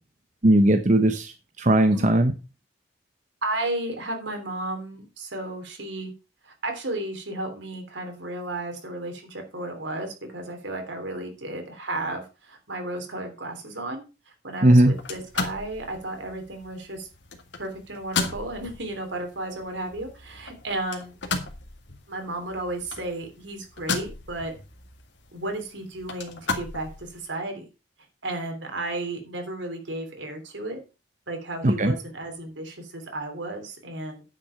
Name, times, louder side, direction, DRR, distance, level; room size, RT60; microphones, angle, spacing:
voice 1, 0.4-1.3 1.6-2.3 14.6-14.9 31.6-31.9, right 1 dB, 40° right, 6 dB, 0.8 m, -18 dB
voice 2, 3.4-6.1 6.4-17.1 17.6-21.2 22.1-24.5 25.3-27.6 28.2-30.8 31.3-34.2, right 2 dB, 80° right, 4 dB, 3.2 m, -33 dB
sound 1, 14.9-27.3, left 3 dB, 70° left, 2.0 m, -35 dB
10.0 x 6.2 x 5.6 m, 0.31 s
head